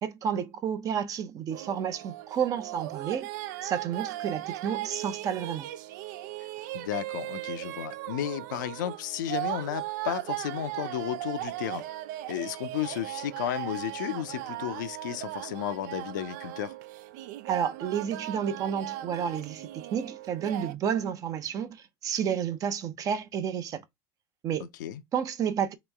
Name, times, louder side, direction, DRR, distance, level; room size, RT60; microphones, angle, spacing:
voice 1, 0.0-3.3 3.6-5.7 17.4-21.8 22.0-23.8 24.4-24.7 25.1-25.7, right 8 dB, 35° right, 0.6 m, -30 dB
sound 1, 1.5-20.7, right 15 dB, 75° right, 0.4 m, -37 dB
voice 2, 6.7-11.8 12.3-16.7 24.6-25.0, left 11 dB, 90° left, 0.5 m, -33 dB
3.0 x 3.0 x 3.4 m
supercardioid pair, 120°, 10 cm